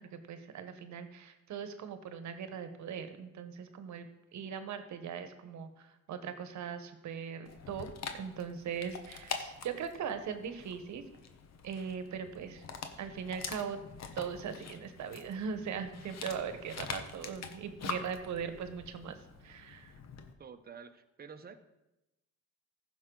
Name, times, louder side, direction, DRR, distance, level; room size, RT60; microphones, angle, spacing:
voice 1, 0.0-4.1 4.3-11.0 11.6-12.7 13.0-13.8 14.1-19.9, right 7 dB, 70° right, 9 dB, 1.1 m, -40 dB
Dog, 7.5-20.3, left 6 dB, 60° left, 1.1 m, -45 dB
voice 2, 20.4-21.6, right 6 dB, 30° right, 8 dB, 0.9 m, -49 dB
15.0 x 5.9 x 3.8 m, 0.96 s
cardioid pair, 90°, 30 cm